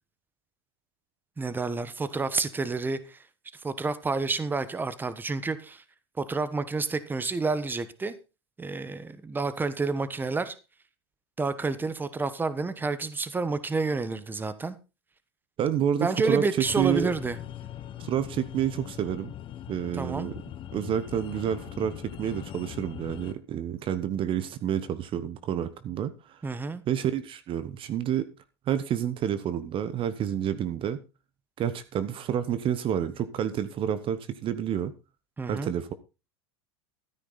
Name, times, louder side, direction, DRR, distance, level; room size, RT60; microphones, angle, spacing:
voice 1, 1.4-3.2 3.6-5.8 6.2-8.1 8.6-10.5 11.4-14.8 16.0-17.4 20.0-20.3 26.4-26.8 35.4-35.7, right 3 dB, 15° right, 1.3 m, -29 dB
voice 2, 15.6-16.5 16.8-17.1 18.0-19.3 19.7-20.3 20.7-26.4 26.9-28.3 28.7-31.0 31.6-34.9 35.4-35.9, right 9 dB, 40° right, 1.1 m, -29 dB
sound 1, 16.6-23.3, left 11 dB, 35° left, 1.1 m, -41 dB
13.0 x 9.8 x 4.1 m
hypercardioid pair, 95°, 14 cm